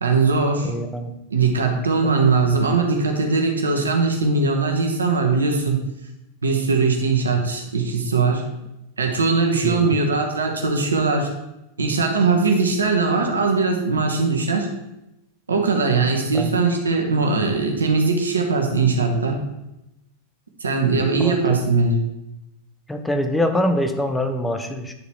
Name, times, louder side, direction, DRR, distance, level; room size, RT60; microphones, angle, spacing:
voice 1, 0.0-0.7 1.3-5.8 6.4-8.4 9.0-11.3 11.8-14.7 15.5-19.4 20.6-22.0, right 4 dB, 75° right, 2 dB, 1.2 m, -20 dB
voice 2, 0.6-1.1 2.0-2.1 7.3-7.4 9.6-9.9 16.3-16.6 21.2-21.7 22.9-24.9, left 1 dB, 5° left, 6 dB, 0.8 m, -24 dB
9.7 x 4.1 x 4.3 m, 0.90 s
figure-of-eight pair, 90°, 0 cm